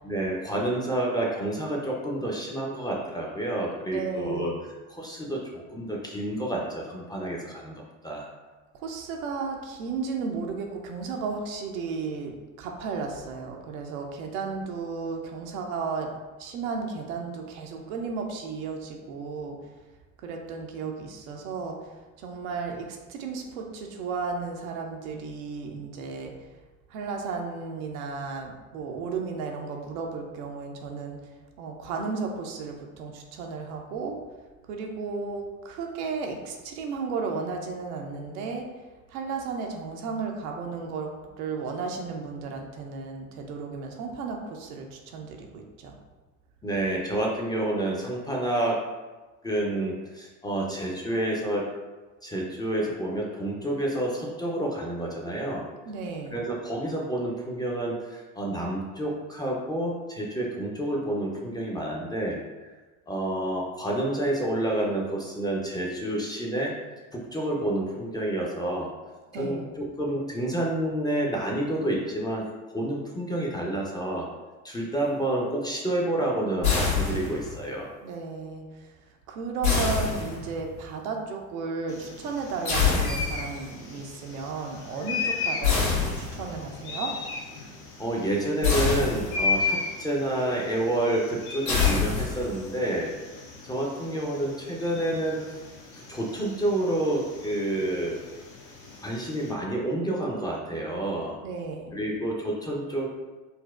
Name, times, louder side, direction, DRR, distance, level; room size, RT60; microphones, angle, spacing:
voice 1, 0.0-4.5 4.9-8.3 46.6-48.8 49.4-51.7 52.2-55.7 56.3-62.4 63.1-66.7 67.1-68.9 69.3-72.4 72.7-74.3 74.6-77.9 87.6-87.7 88.0-93.1 93.6-95.6 96.1-98.2 99.0-101.4 101.9-103.1, right 1 dB, 10° left, -2 dB, 0.5 m, -29 dB
voice 2, 3.9-4.6 8.7-19.6 20.2-21.8 22.2-26.3 26.9-31.2 31.6-34.2 34.7-38.7 39.1-46.0 55.8-56.4 69.3-69.7 78.0-78.9 79.3-87.2 101.4-102.0, right 4 dB, 75° right, 2 dB, 0.6 m, -34 dB
sound 1, 76.6-77.6 79.6-80.7 82.6-83.6 85.6-86.6 88.6-89.6 91.7-92.7, left 5 dB, 85° left, 1.5 m, -25 dB
sound 2, 81.9-99.5, left 4 dB, 60° left, 0.8 m, -36 dB
4.0 x 2.0 x 2.3 m, 1.2 s
hypercardioid pair, 65°, 43 cm